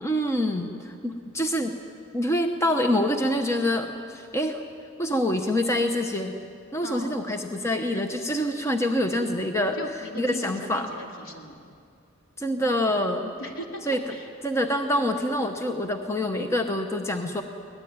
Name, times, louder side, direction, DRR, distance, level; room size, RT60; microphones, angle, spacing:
voice 1, 0.0-1.7 2.1-4.6 5.0-6.3 6.7-9.8 10.2-10.9 12.4-13.3 13.9-14.0 14.4-17.4, left 1 dB, 10° left, 5 dB, 0.9 m, -26 dB
voice 2, 6.8-7.2 9.7-11.6 13.4-13.8 14.1-14.3, equal, 70° left, 1 dB, 3.1 m, -38 dB
24.0 x 18.5 x 9.5 m, 2.4 s
head